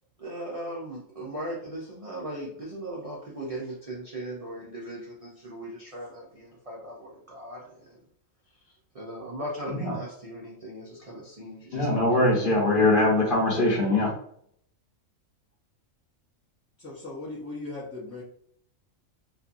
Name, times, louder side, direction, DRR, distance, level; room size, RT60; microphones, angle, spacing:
voice 1, 0.2-8.0 8.6-12.5, right 1 dB, 45° right, -5 dB, 0.4 m, -38 dB
voice 2, 11.7-14.1, left 2 dB, 45° left, -3 dB, 0.8 m, -22 dB
voice 3, 16.8-18.2, left 2 dB, 20° left, -8 dB, 0.3 m, -38 dB
2.7 x 2.5 x 2.5 m, 0.66 s
omnidirectional pair, 1.4 m